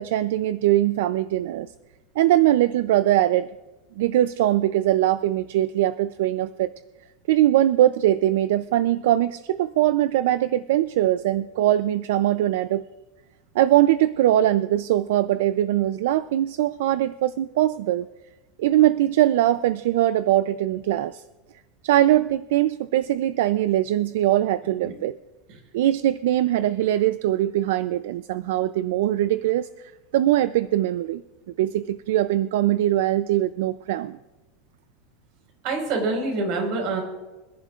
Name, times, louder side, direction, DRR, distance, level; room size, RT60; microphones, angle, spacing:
voice 1, 0.0-1.7 2.2-3.5 4.0-6.7 7.3-12.8 13.5-18.1 18.6-21.2 21.8-25.2 25.7-31.2 31.6-34.2, right 13 dB, 75° right, 14 dB, 0.4 m, -21 dB
voice 2, 35.6-37.0, right 3 dB, 50° right, 2 dB, 4.6 m, -26 dB
26.0 x 11.0 x 2.4 m, 1.1 s
supercardioid pair, 170°, 0 cm